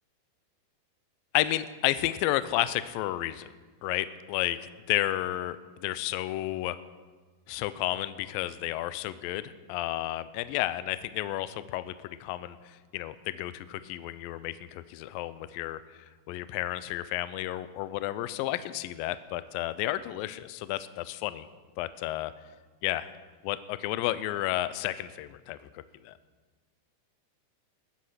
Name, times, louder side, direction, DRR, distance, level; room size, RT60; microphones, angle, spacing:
voice 1, 1.3-3.5 3.8-6.8 7.5-15.8 16.3-21.5 21.8-22.3 22.8-23.1 23.4-26.1, left 15 dB, 80° left, 14 dB, 2.2 m, -32 dB
20.5 x 10.0 x 6.5 m, 1.4 s
omnidirectional pair, 4.6 m